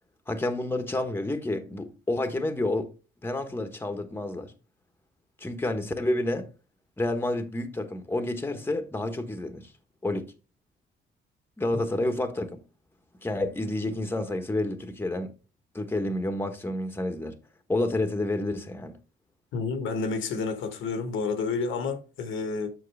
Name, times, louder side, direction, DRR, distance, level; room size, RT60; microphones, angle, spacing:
voice 1, 0.3-2.9 3.2-4.5 5.4-6.5 7.0-9.7 10.0-10.3 11.6-12.6 13.2-15.3 15.7-17.3 17.7-19.0, left 2 dB, 10° left, 1.2 m, -29 dB
voice 2, 19.5-22.7, left 4 dB, 80° left, 1.5 m, -30 dB
7.7 x 6.0 x 3.4 m
cardioid pair, 90°, 20 cm